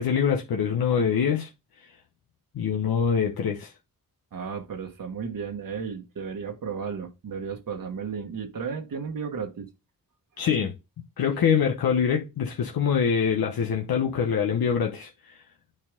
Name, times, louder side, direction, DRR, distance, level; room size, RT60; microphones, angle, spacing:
voice 1, 0.0-1.5 2.5-3.7 10.4-10.7 11.2-15.1, left 7 dB, 80° left, 1.0 m, -24 dB
voice 2, 4.3-9.7, right 6 dB, 65° right, 1.4 m, -34 dB
8.6 x 4.2 x 3.7 m
cardioid pair, 80°, 35 cm